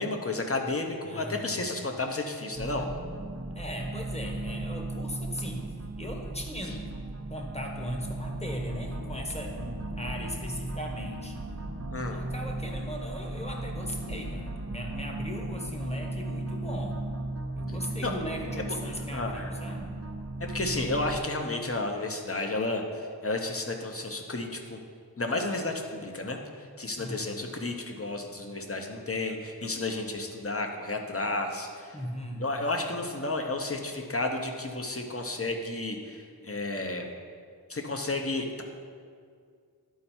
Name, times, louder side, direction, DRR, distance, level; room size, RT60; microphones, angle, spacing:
voice 1, 0.0-2.9 11.9-12.2 18.0-18.1 19.1-19.5 20.4-24.8 25.2-26.4 26.8-31.9 32.4-37.1 37.7-38.6, left 2 dB, 35° left, 3 dB, 0.9 m, -32 dB
voice 2, 1.0-1.7 3.5-6.9 7.3-11.4 12.0-17.0 17.6-19.9 26.9-27.3 31.9-32.5, equal, 15° left, 1 dB, 1.2 m, -38 dB
sound 1, 2.5-21.2, right 2 dB, 40° right, 0.8 m, -36 dB
11.5 x 4.5 x 4.4 m, 2.2 s
wide cardioid pair, 40°, 39 cm